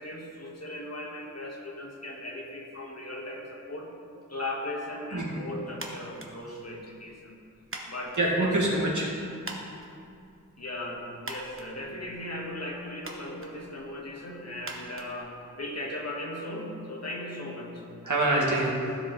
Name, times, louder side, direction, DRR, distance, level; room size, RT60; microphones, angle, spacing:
voice 1, 0.0-3.9 4.3-7.4 7.8-8.5 10.6-17.8, left 1 dB, 50° left, -1 dB, 1.4 m, -37 dB
sound 1, 5.7-15.9, right 2 dB, 40° right, 1.1 m, -46 dB
voice 2, 8.2-9.2 18.0-18.8, right 2 dB, 65° right, -4 dB, 1.9 m, -25 dB
14.5 x 5.0 x 3.9 m, 2.5 s
wide cardioid pair, 75°, 33 cm